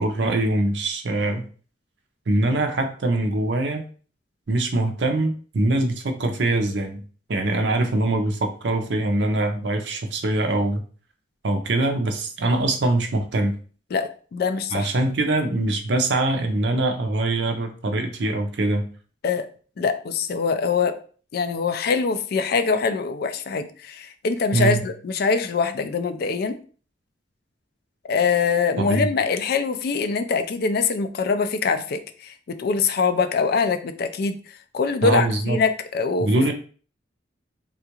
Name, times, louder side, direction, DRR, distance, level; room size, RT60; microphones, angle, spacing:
voice 1, 0.0-1.4 2.3-3.8 4.5-7.0 7.3-10.8 11.4-13.6 14.7-18.9 24.5-24.8 28.8-29.1 35.0-35.6 36.2-36.5, right 2 dB, 65° right, 5 dB, 0.6 m, -23 dB
voice 2, 13.9-14.9 19.2-19.5 19.8-21.0 21.3-26.6 28.1-34.4 34.7-36.5, left 5 dB, 55° left, 10 dB, 0.3 m, -23 dB
3.6 x 2.4 x 2.9 m, 0.40 s
head